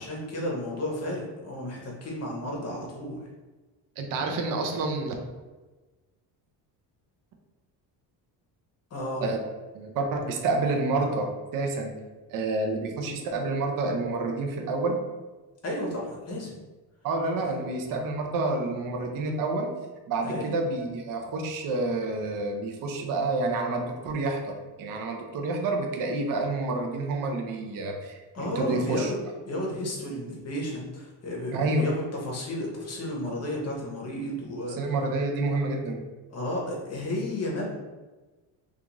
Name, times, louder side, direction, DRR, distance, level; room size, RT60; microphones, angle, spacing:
voice 1, 0.0-3.2 8.9-9.2 15.6-16.6 20.2-20.5 28.3-29.2 29.4-34.8 36.3-37.8, left 1 dB, 35° left, -2 dB, 0.8 m, -32 dB
voice 2, 4.0-5.2 9.2-9.4 9.7-12.0 12.3-15.0 17.0-19.7 20.1-29.1 31.5-31.8 34.8-36.0, right 2 dB, 50° right, 2 dB, 0.5 m, -28 dB
2.4 x 2.4 x 2.9 m, 1.2 s
cardioid pair, 115°, 44 cm